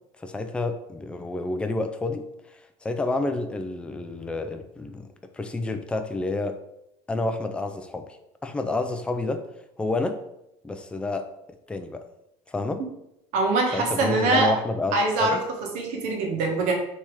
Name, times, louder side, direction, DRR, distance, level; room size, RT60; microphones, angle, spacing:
voice 1, 0.2-2.2 2.5-5.1 5.3-6.6 7.1-8.2 8.4-9.5 9.8-10.2 10.6-11.3 11.7-12.1 12.5-12.8 13.7-15.4, left 2 dB, 5° left, 7 dB, 0.3 m, -29 dB
voice 2, 13.3-14.5 14.9-16.7, right 2 dB, 70° right, 1 dB, 1.2 m, -23 dB
3.4 x 2.9 x 4.6 m, 0.84 s
cardioid pair, 125°, 14 cm